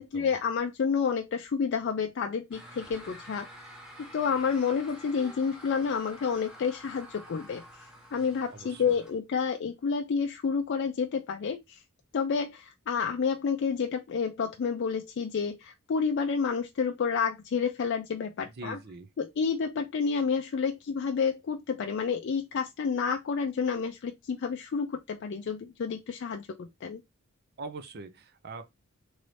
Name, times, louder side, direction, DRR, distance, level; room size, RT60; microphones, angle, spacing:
voice 1, 0.0-11.8 12.1-18.8 19.2-27.0, left 6 dB, 55° left, 0.4 m, -30 dB
sound 1, 2.5-9.2, equal, 5° right, 0.8 m, -49 dB
voice 2, 8.5-9.0 18.6-19.1 27.6-28.7, right 3 dB, 45° right, 0.5 m, -42 dB
3.1 x 2.6 x 3.1 m
head